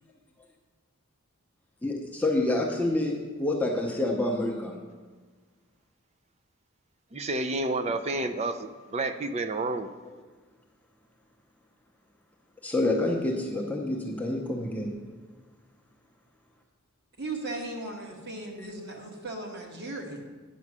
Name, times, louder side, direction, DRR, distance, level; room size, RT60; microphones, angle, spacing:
voice 1, 1.8-4.9 10.1-10.2 12.6-15.0, left 2 dB, 5° left, 0 dB, 0.7 m, -28 dB
voice 2, 7.1-9.9, right 2 dB, 30° right, 9 dB, 0.4 m, -30 dB
voice 3, 17.2-20.2, right 2 dB, 50° right, 0 dB, 1.4 m, -37 dB
9.5 x 5.4 x 6.1 m, 1.4 s
head